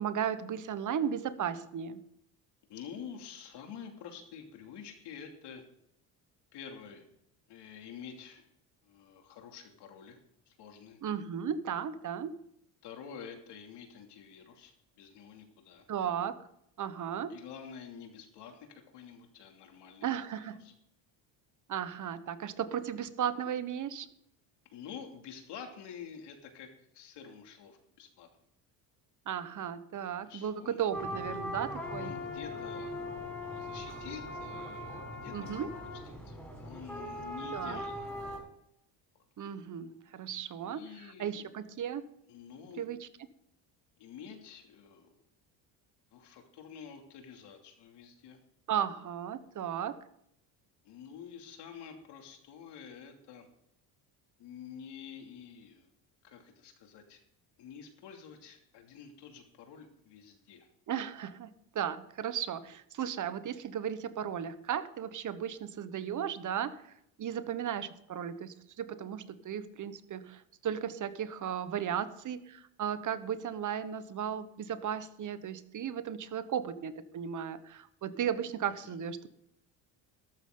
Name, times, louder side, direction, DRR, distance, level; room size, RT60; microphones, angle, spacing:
voice 1, 0.0-2.0 11.0-12.3 15.9-16.4 16.8-17.4 20.0-20.6 21.7-24.1 29.3-32.1 35.3-35.7 37.5-37.8 39.4-42.0 42.8-43.1 48.7-50.0 60.9-61.5 61.7-66.8 67.2-79.3, right 8 dB, 45° right, 13 dB, 1.2 m, -35 dB
voice 2, 2.7-5.6 6.5-7.0 7.5-8.5 8.8-10.2 10.5-11.0 12.8-15.9 17.3-20.7 22.6-22.8 24.7-26.7 26.9-28.3 30.0-30.9 32.0-33.0 33.5-38.1 40.6-41.5 42.3-42.9 44.0-45.1 46.1-48.4 50.8-53.5 54.4-55.9 56.2-57.2 57.6-60.7 78.8-78.9, left 7 dB, 70° left, 4 dB, 2.8 m, -48 dB
sound 1, 30.9-38.4, left 1 dB, ahead, 6.0 m, -40 dB
13.5 x 12.5 x 3.9 m, 0.77 s
supercardioid pair, 95°, 43 cm